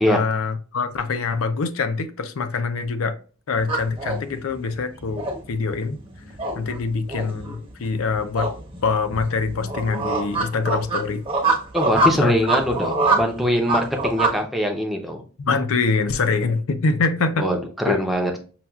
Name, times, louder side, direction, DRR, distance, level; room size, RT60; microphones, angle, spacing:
voice 1, 0.1-3.2 3.5-6.0 6.6-8.5 8.8-11.2 12.2-12.3 15.4-17.4 17.9-18.0, left 4 dB, 75° left, 0.5 m, -24 dB
sound 1, 3.6-14.4, right 2 dB, 25° right, 0.8 m, -25 dB
voice 2, 11.7-15.2 17.4-18.4, equal, ahead, 0.6 m, -22 dB
5.6 x 2.3 x 2.3 m
head